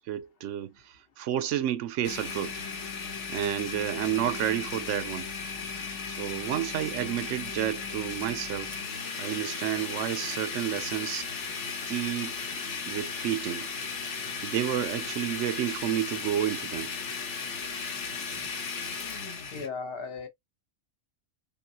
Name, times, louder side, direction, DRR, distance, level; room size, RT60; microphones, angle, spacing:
voice 1, 0.0-2.6 3.3-5.3 6.1-8.8 9.2-11.3 11.9-12.4 12.9-13.7 14.2-16.9, right 11 dB, 80° right, 0.9 m, -31 dB
Domestic sounds home sounds, 2.0-19.7, left 5 dB, 70° left, 1.2 m, -36 dB
voice 2, 19.5-20.3, left 4 dB, 55° left, 1.0 m, -36 dB
5.4 x 2.0 x 2.7 m
omnidirectional pair, 1.3 m